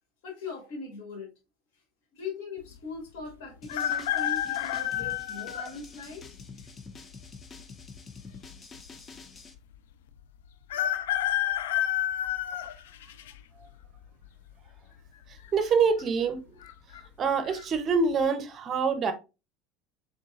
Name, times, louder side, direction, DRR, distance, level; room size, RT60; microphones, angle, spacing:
voice 1, 0.2-1.3 2.1-6.7, left 4 dB, 70° left, 1.8 m, -40 dB
sound 1, 3.6-9.5, left 4 dB, 30° left, 0.7 m, -48 dB
sound 2, 3.7-5.7 6.4-6.5 7.6-8.2 8.5-8.6 8.8-8.9 10.7-13.3 13.8-14.2 15.4-15.7 16.0-16.1 16.6-17.0 17.5-17.6, left 12 dB, 90° left, 0.3 m, -29 dB
voice 2, 15.3-16.4 17.2-19.1, right 5 dB, 40° right, 0.8 m, -25 dB
3.8 x 3.8 x 2.5 m
supercardioid pair, 100°, 0 cm